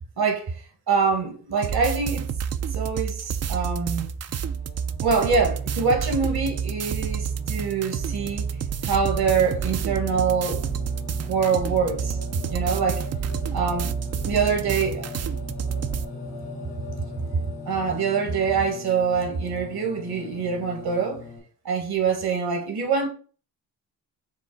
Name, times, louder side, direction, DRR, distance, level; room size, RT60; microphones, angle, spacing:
voice 1, 0.2-0.6 0.9-2.3 2.7-4.1 5.0-8.5 8.8-10.6 11.3-12.2 12.5-13.1 13.5-13.9 14.2-15.2 17.7-21.2 21.6-23.1, right 5 dB, 65° right, 1.6 m, -24 dB
sound 1, 1.6-16.0, right 7 dB, 40° right, 0.4 m, -29 dB
Singing, 4.3-21.4, left 2 dB, 85° left, 2.1 m, -39 dB
6.2 x 2.1 x 3.9 m
supercardioid pair, 60°, 41 cm